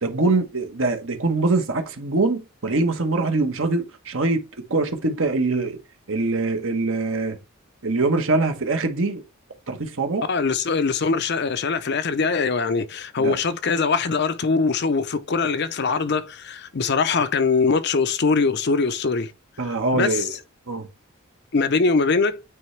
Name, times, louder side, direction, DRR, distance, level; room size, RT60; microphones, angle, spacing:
voice 1, 0.0-4.4 4.7-5.8 6.1-7.4 7.8-9.2 9.7-10.3 13.2-13.4 19.6-20.3 20.7-20.9, right 3 dB, 65° right, 1.2 m, -23 dB
voice 2, 10.3-19.3 19.9-20.3 21.5-22.4, left 4 dB, 50° left, 0.6 m, -22 dB
9.1 x 3.3 x 3.2 m
head